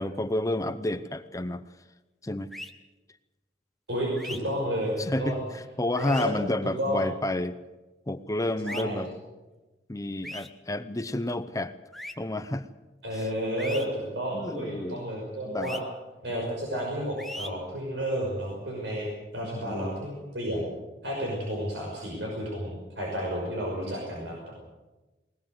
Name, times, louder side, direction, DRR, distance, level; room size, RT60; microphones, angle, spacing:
voice 1, 0.0-1.7 2.2-2.5 5.0-7.6 8.1-9.1 9.9-11.7 12.2-12.7 13.1-13.3 14.3-15.0 15.5-15.8 19.5-20.0, left 1 dB, 20° left, 12 dB, 0.7 m, -30 dB
sound 1, 2.5-2.7 4.2-4.4 6.0-6.2 8.6-8.8 10.2-10.5 11.9-12.1 13.6-13.8 15.6-15.8 17.2-17.5, left 1 dB, ahead, 1.1 m, -38 dB
voice 2, 3.9-5.4 6.0-6.3 6.6-7.0 8.6-9.0 13.0-15.8 16.2-20.6 21.0-24.5, equal, 85° right, -2 dB, 5.9 m, -31 dB
20.5 x 20.0 x 7.9 m, 1.1 s
head